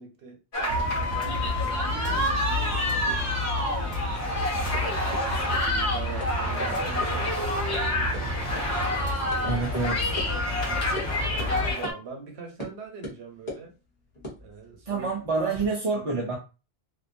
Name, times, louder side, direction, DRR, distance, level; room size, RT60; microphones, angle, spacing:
voice 1, 0.0-3.3 5.6-8.4 8.9-9.7 11.4-13.7 14.4-15.1 15.9-16.1, right 5 dB, 75° right, 1.0 m, -43 dB
sound 1, 0.5-11.9, left 1 dB, 90° left, 1.3 m, -28 dB
sound 2, 0.6-3.4 3.6-4.4 4.7-4.8 5.1-5.2 5.5-5.6 6.2-6.3 6.6-6.7 7.0-7.1 7.4-7.8 8.1-8.2 8.6-8.7 9.3-9.4 9.7-9.8 10.2-10.3 11.0-11.1 11.4-11.5 11.8-12.0 12.6-12.7 13.0-13.6 14.1-15.7, left 1 dB, 40° left, 0.9 m, -40 dB
sound 3, 0.7-11.7, left 2 dB, 10° right, 1.1 m, -32 dB
voice 2, 9.4-10.0 14.9-16.4, right 4 dB, 45° right, 0.5 m, -27 dB
2.6 x 2.2 x 2.5 m
omnidirectional pair, 1.1 m